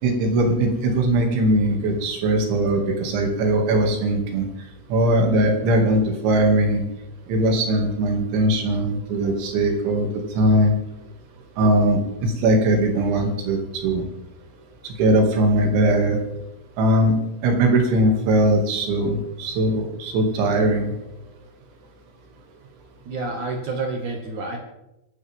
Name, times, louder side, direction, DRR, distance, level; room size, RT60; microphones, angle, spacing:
voice 1, 0.0-4.5 4.9-6.8 7.3-10.1 10.4-10.7 11.6-14.0 14.8-16.2 16.8-20.9, right 1 dB, 80° right, 2 dB, 4.7 m, -20 dB
voice 2, 23.0-24.6, right 3 dB, 55° right, 1 dB, 2.7 m, -28 dB
27.0 x 12.0 x 3.6 m, 0.89 s
omnidirectional pair, 5.3 m